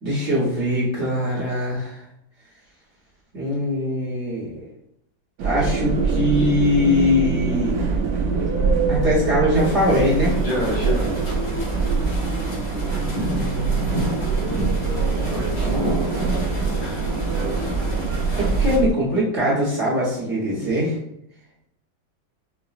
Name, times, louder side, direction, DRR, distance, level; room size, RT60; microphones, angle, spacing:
voice 1, 0.0-2.0 3.3-4.7 5.4-7.7 8.9-10.4 13.3-14.0 18.4-20.9, left 1 dB, 45° right, -7 dB, 1.1 m, -22 dB
sound 1, 5.4-18.9, right 4 dB, 75° right, 0.7 m, -24 dB
sound 2, 7.1-7.4 8.2-13.5 14.0-17.9, right 3 dB, 20° right, 1.0 m, -33 dB
sound 3, 9.5-18.8, right 1 dB, 80° left, 2.2 m, -30 dB
voice 2, 10.4-11.2 15.3-15.7 16.8-17.0, left 1 dB, 60° left, -6 dB, 2.1 m, -27 dB
4.7 x 2.1 x 2.4 m, 0.78 s
omnidirectional pair, 1.9 m